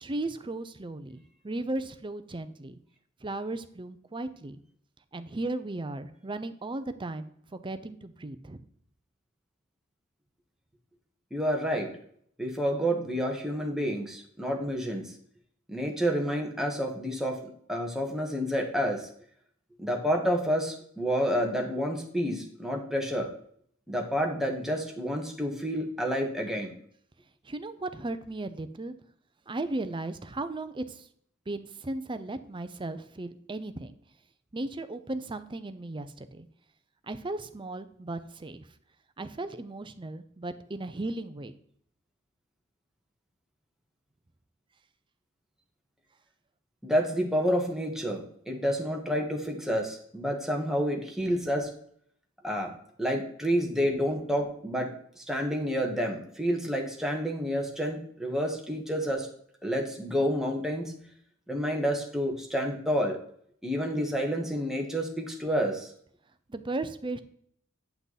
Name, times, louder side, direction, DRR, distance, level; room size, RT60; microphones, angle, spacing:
voice 1, 0.0-2.7 3.2-4.6 5.1-8.6 27.4-28.9 29.5-31.1 31.5-33.9 34.5-36.5 37.0-38.7 39.2-41.5 66.5-67.2, right 2 dB, 25° right, 10 dB, 0.6 m, -36 dB
voice 2, 11.3-11.9 12.4-15.1 15.7-19.1 19.8-23.3 23.9-26.7 46.8-51.7 52.4-52.7 53.0-54.9 55.2-59.3 59.6-60.9 61.5-63.2 63.6-65.9, equal, ahead, 1 dB, 1.5 m, -29 dB
9.2 x 5.9 x 4.1 m, 0.64 s
head